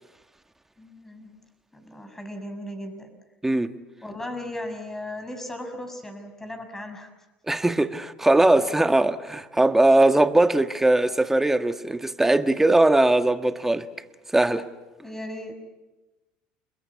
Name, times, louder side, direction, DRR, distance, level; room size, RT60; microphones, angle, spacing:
voice 1, 0.8-1.3 1.7-3.1 4.0-7.1 15.0-15.5, left 1 dB, 10° left, 6.5 m, -36 dB
voice 2, 7.5-13.8 14.3-14.7, right 2 dB, 10° right, 1.6 m, -20 dB
30.0 x 21.5 x 8.5 m
supercardioid pair, 90°, 4 cm